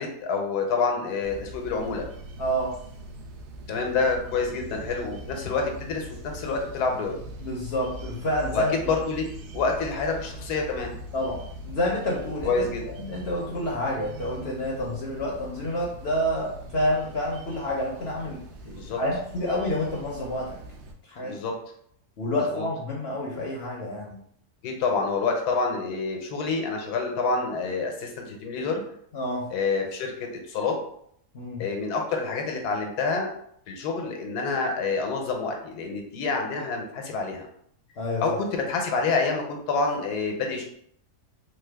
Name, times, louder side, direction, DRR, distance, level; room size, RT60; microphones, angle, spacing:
voice 1, 0.0-2.0 3.7-7.2 8.5-9.2 9.5-10.9 12.4-12.8 18.7-19.0 21.2-21.5 22.3-22.7 24.6-28.8 29.5-30.1 30.5-30.7 31.6-33.3 33.7-37.5 38.2-40.6, left 4 dB, 85° left, 2 dB, 1.2 m, -27 dB
sound 1, 1.2-20.9, right 1 dB, 70° right, 0.6 m, -41 dB
voice 2, 2.4-2.7 7.4-8.7 11.1-11.4 11.6-18.4 19.0-20.6 21.0-21.3 22.2-24.2 29.1-29.5 31.3-31.6 38.0-38.4, left 1 dB, 60° left, -3 dB, 0.7 m, -28 dB
3.3 x 2.0 x 3.3 m, 0.68 s
omnidirectional pair, 1.6 m